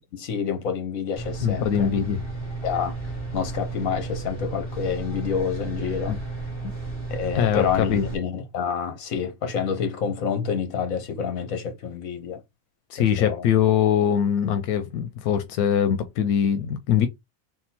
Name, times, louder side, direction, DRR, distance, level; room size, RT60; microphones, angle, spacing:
voice 1, 0.1-1.9 2.6-3.0 3.3-6.4 7.1-12.4 13.0-13.5, left 7 dB, 70° left, 1.4 m, -28 dB
sound 1, 1.1-8.2, right 3 dB, 40° left, 1.7 m, -33 dB
voice 2, 1.4-2.2 6.1-6.2 7.3-8.0 12.9-17.1, left 9 dB, 90° left, 1.1 m, -22 dB
3.7 x 2.4 x 4.1 m
omnidirectional pair, 1.5 m